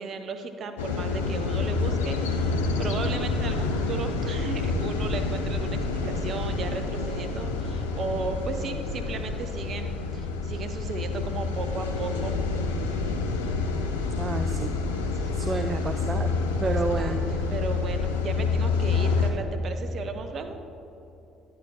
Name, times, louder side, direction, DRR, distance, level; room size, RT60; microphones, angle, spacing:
voice 1, 0.0-12.3 15.1-15.8 16.6-20.6, right 4 dB, 50° right, 6 dB, 0.7 m, -35 dB
sound 1, 0.8-19.3, left 4 dB, 80° left, 0.5 m, -28 dB
voice 2, 14.2-14.7 15.3-16.3 16.6-17.2, right 4 dB, 30° right, 7 dB, 0.3 m, -30 dB
10.0 x 9.2 x 2.9 m, 3.0 s
figure-of-eight pair, 50°, 0 cm